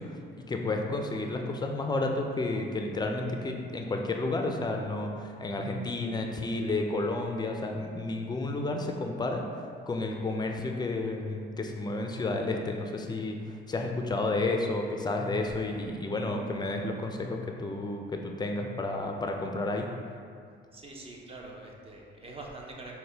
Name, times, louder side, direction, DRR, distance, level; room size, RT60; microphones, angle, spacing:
voice 1, 0.0-19.9, left 2 dB, 20° left, 2 dB, 0.4 m, -31 dB
voice 2, 20.7-22.9, right 2 dB, 30° right, -1 dB, 0.6 m, -44 dB
4.2 x 2.2 x 3.3 m, 2.2 s
cardioid pair, 90°, 20 cm